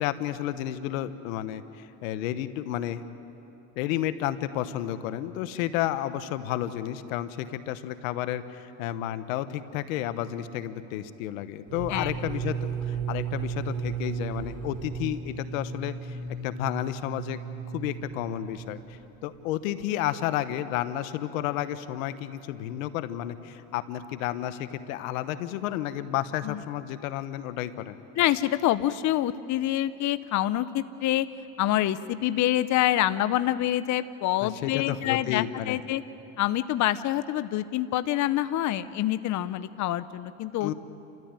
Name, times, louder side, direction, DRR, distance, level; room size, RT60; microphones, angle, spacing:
voice 1, 0.0-3.0 3.8-16.2 16.4-17.4 17.7-28.0 34.4-35.8 40.6-40.7, left 12 dB, 85° left, 12 dB, 1.1 m, -31 dB
sound 1, 11.7-19.4, right 6 dB, 50° right, 4.5 m, -35 dB
voice 2, 28.2-31.3 31.6-36.0 36.4-40.7, left 13 dB, 45° left, 13 dB, 0.8 m, -26 dB
29.5 x 14.0 x 8.9 m, 3.0 s
supercardioid pair, 95°, 39 cm